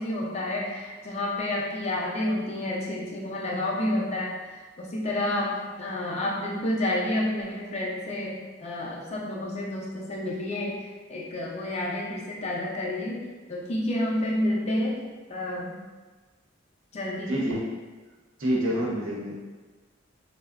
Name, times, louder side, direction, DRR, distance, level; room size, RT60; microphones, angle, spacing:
voice 1, 0.0-4.4 4.8-13.2 13.5-15.0 15.3-15.8 16.9-17.5, left 1 dB, 35° left, -4 dB, 0.4 m, -29 dB
voice 2, 17.3-17.7 18.4-19.4, equal, 85° right, -4 dB, 0.7 m, -27 dB
3.5 x 2.0 x 2.3 m, 1.3 s
head